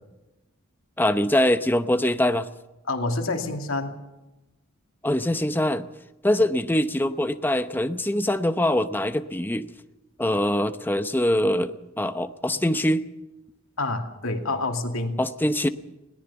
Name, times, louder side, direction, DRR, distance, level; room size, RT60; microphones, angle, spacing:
voice 1, 1.0-2.5 5.0-5.9 6.2-9.7 10.2-13.0 15.2-15.7, left 1 dB, 10° left, 10 dB, 0.8 m, -23 dB
voice 2, 2.9-3.9 13.8-15.2, left 2 dB, 85° left, 4 dB, 2.5 m, -27 dB
20.5 x 18.0 x 7.0 m, 1.0 s
head